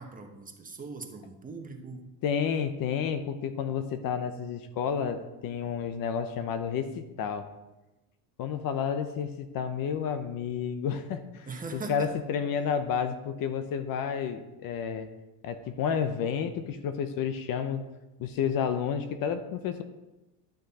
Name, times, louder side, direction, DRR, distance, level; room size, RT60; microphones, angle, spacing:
voice 1, 0.0-2.1 11.5-12.1, right 4 dB, 20° right, 3 dB, 1.2 m, -40 dB
voice 2, 2.2-7.5 8.4-11.5 11.7-15.1 15.4-17.9 18.2-19.8, left 7 dB, 55° left, 9 dB, 0.9 m, -31 dB
11.5 x 6.4 x 4.2 m, 1.0 s
cardioid pair, 125°, 40 cm